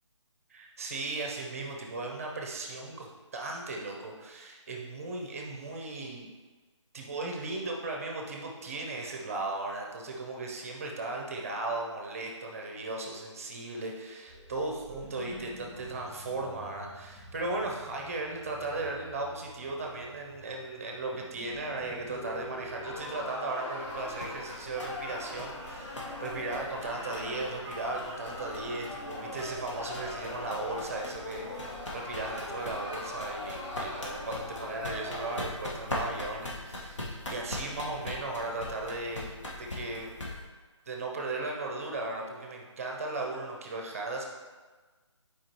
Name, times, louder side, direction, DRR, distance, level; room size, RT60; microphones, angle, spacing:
voice 1, 0.5-6.3 6.9-39.3 39.6-40.1 40.9-44.2, right 2 dB, 30° right, 1 dB, 0.6 m, -36 dB
sound 1, 14.3-23.4, equal, ahead, 1.3 m, -49 dB
sound 2, 22.8-35.4, left 1 dB, 30° left, 1.7 m, -40 dB
sound 3, 23.8-40.4, left 1 dB, 70° left, 1.7 m, -41 dB
7.4 x 4.8 x 3.0 m, 1.3 s
figure-of-eight pair, 160°, 16 cm